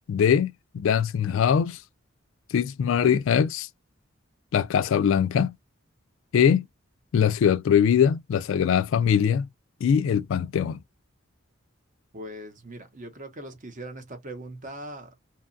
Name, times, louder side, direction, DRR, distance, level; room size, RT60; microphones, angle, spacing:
voice 1, 0.1-1.8 2.5-3.7 4.5-5.6 6.3-6.7 7.1-9.5 9.8-10.8, left 8 dB, 70° left, 0.3 m, -22 dB
voice 2, 12.1-15.1, right 1 dB, 40° right, 0.7 m, -40 dB
2.8 x 2.3 x 2.5 m
head